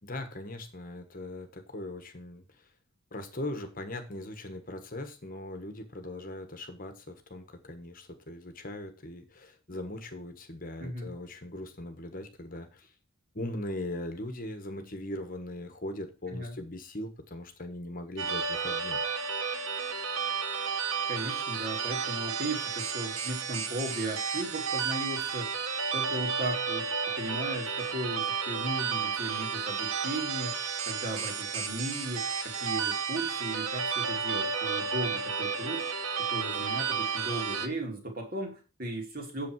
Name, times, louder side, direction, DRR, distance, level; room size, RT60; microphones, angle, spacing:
voice 1, 0.0-2.7 3.1-12.9 13.3-19.0, left 1 dB, 40° left, 7 dB, 1.3 m, -40 dB
voice 2, 10.8-11.1 16.3-16.6 21.1-25.6 25.9-26.9 27.2-35.8 36.2-39.5, right 1 dB, 40° right, 1 dB, 2.8 m, -36 dB
sound 1, 18.2-37.7, right 6 dB, 60° right, 1.1 m, -32 dB
8.4 x 6.9 x 4.6 m, 0.32 s
head